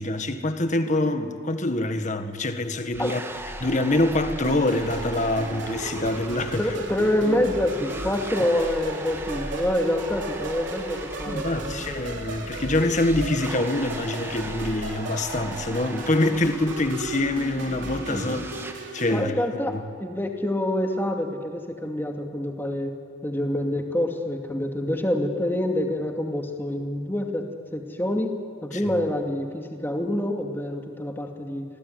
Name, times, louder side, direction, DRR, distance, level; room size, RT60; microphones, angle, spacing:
voice 1, 0.0-3.2 3.6-6.7 11.3-18.4 18.9-19.4 19.6-19.8 28.7-29.0, left 1 dB, 40° left, 1.7 m, -25 dB
sound 1, 2.9-18.7, right 1 dB, 15° right, 1.6 m, -38 dB
sound 2, 4.4-19.2, right 2 dB, 75° right, 3.3 m, -36 dB
voice 2, 6.6-12.1 18.1-18.5 19.1-22.9 23.2-27.4 27.7-28.4 28.6-31.6, left 1 dB, 10° left, 2.5 m, -27 dB
28.5 x 20.0 x 9.6 m
head